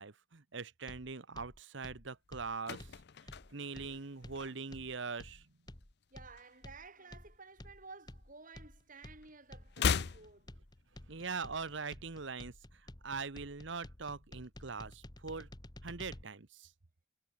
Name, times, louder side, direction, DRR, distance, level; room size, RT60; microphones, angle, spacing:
voice 1, 0.0-5.5 11.1-15.5 15.8-16.7, right 4 dB, 65° right, 1.1 m, -42 dB
sound 1, 0.9-16.2, left 1 dB, 20° left, 1.2 m, -52 dB
sound 2, 2.3-4.9 5.2-5.5 5.8-7.3 7.5-8.9 9.2-11.3 11.5-11.6, left 6 dB, 55° left, 0.6 m, -39 dB
voice 2, 6.1-10.5, right 4 dB, 40° right, 6.2 m, -54 dB
head